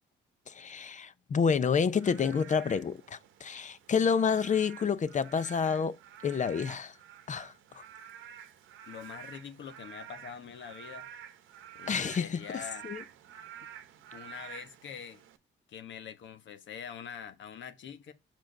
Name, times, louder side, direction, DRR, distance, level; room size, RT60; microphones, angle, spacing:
voice 1, 0.5-6.0 6.2-6.9 7.3-7.8 11.9-12.4 12.8-13.0, left 6 dB, 40° left, 0.6 m, -29 dB
Frog / Rain, 1.9-15.4, right 9 dB, 85° right, 0.9 m, -49 dB
voice 2, 8.9-11.1 11.7-12.9 14.1-15.2 15.7-18.1, left 8 dB, 70° left, 1.2 m, -44 dB
6.1 x 4.7 x 5.1 m
cardioid pair, 90°, 20 cm